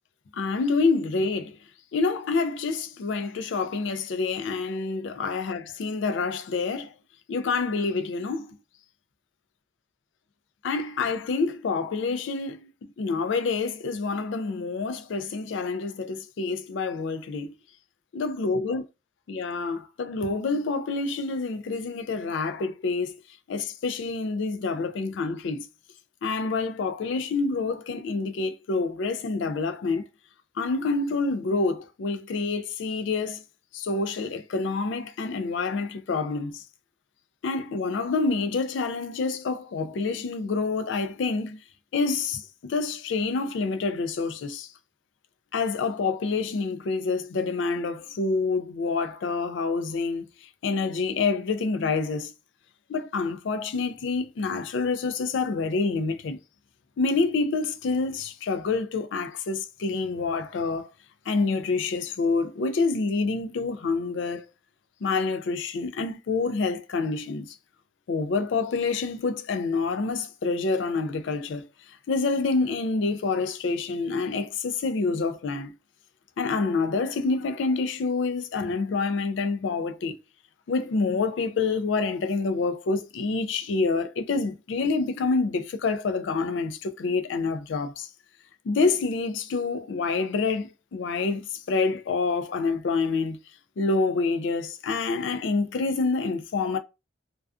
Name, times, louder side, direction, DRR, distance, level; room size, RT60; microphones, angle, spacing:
voice 1, 0.3-1.6 1.9-6.9 7.3-8.5 10.6-17.5 18.1-18.8 19.3-23.1 23.5-25.7 26.2-30.0 30.6-33.4 33.7-36.6 37.4-41.6 41.9-44.7 45.5-52.3 52.9-56.4 57.0-60.9 61.3-64.5 65.0-67.6 68.1-75.7 76.4-80.2 80.7-88.1 88.6-93.4 93.8-96.8, left 4 dB, 65° left, 0.3 m, -27 dB
2.3 x 2.3 x 2.3 m
head